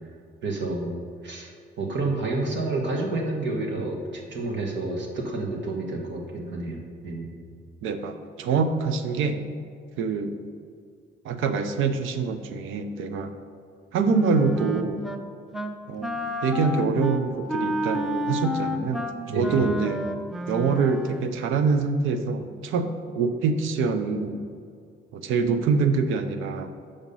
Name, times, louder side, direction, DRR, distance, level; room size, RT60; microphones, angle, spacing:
voice 1, 0.4-0.9 1.2-1.5 1.8-7.3 19.2-19.6, right 2 dB, 65° right, 1 dB, 1.5 m, -29 dB
voice 2, 7.8-9.4 10.0-10.3 11.2-13.3 13.9-15.0 15.9-19.1 19.3-20.1 20.5-24.4 25.1-26.7, right 4 dB, 90° right, 9 dB, 0.6 m, -25 dB
Wind instrument woodwind instrument, 14.1-15.2 15.5-21.3, equal, ahead, 0.6 m, -30 dB
7.2 x 5.2 x 5.4 m, 2.3 s
cardioid pair, 90°, 20 cm